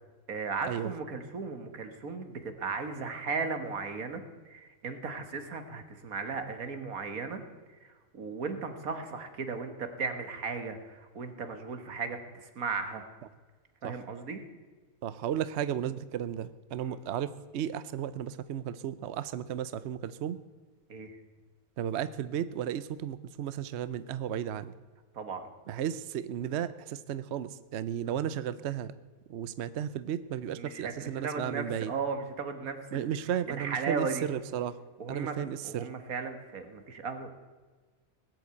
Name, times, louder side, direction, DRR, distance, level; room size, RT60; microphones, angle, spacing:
voice 1, 0.3-7.4 7.8-13.1 13.8-14.4 16.8-17.0 20.9-21.2 25.1-25.5 30.6-33.2 33.5-34.3 35.0-35.3 35.6-37.3, right 4 dB, 85° right, 8 dB, 2.0 m, -36 dB
voice 2, 15.0-20.4 21.8-24.7 25.7-28.9 29.3-31.9 32.9-34.8 35.1-35.9, right 10 dB, 60° right, 14 dB, 0.8 m, -34 dB
18.5 x 8.1 x 8.2 m, 1.4 s
omnidirectional pair, 1.5 m